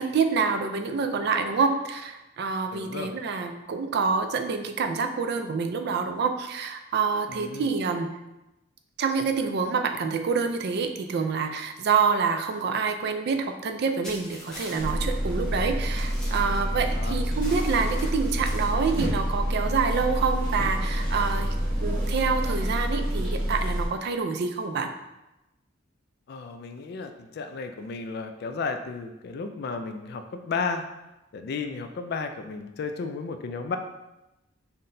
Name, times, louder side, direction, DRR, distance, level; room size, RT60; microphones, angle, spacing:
voice 1, 0.0-8.1 9.0-21.5 21.8-24.9, right 5 dB, 55° right, 6 dB, 0.3 m, -27 dB
voice 2, 2.7-3.1 7.3-7.7 16.8-17.2 26.3-30.8 31.3-33.8, left 4 dB, 55° left, 7 dB, 0.3 m, -33 dB
sound 1, 14.0-14.9 15.4-15.5 15.8-16.9 17.3-18.7, left 1 dB, 5° left, 0.8 m, -42 dB
sound 2, 14.8-23.9, equal, 25° right, 1.3 m, -27 dB
5.6 x 2.1 x 2.6 m, 0.97 s
head